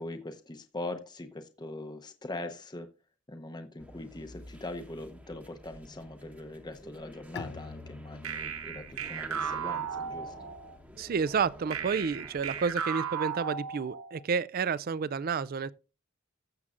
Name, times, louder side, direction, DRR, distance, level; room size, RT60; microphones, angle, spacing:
voice 1, 0.0-2.9 3.3-10.3, left 2 dB, 20° left, 0.7 m, -41 dB
sound 1, 3.8-12.7, equal, 5° right, 1.0 m, -51 dB
Bowed string instrument, 7.4-12.9, left 4 dB, 55° left, 0.5 m, -49 dB
sound 2, 8.2-10.8 11.7-14.2, right 7 dB, 80° right, 1.1 m, -35 dB
voice 2, 11.0-15.7, right 5 dB, 45° right, 0.4 m, -30 dB
14.5 x 7.3 x 2.5 m
head